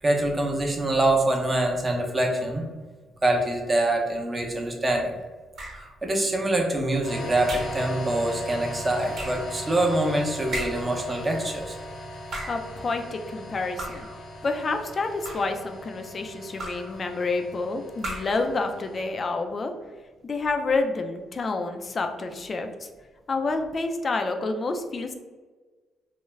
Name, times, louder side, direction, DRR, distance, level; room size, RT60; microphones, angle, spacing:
voice 1, 0.0-2.7 3.2-5.1 6.0-11.7, right 1 dB, 25° right, 1 dB, 0.6 m, -25 dB
sound 1, 5.6-6.0 7.5-7.9 9.1-9.5 10.5-11.0 12.1-12.7 13.8-14.2 15.0-15.6 16.6-17.0 18.0-18.5, right 1 dB, 55° right, 0.7 m, -35 dB
sound 2, 7.0-19.1, left 1 dB, 75° left, 0.8 m, -39 dB
voice 2, 12.5-14.1 14.4-19.7 20.2-22.9 23.3-25.1, left 3 dB, 40° left, 5 dB, 0.3 m, -28 dB
2.3 x 2.1 x 3.1 m, 1.3 s
cardioid pair, 90°, 0 cm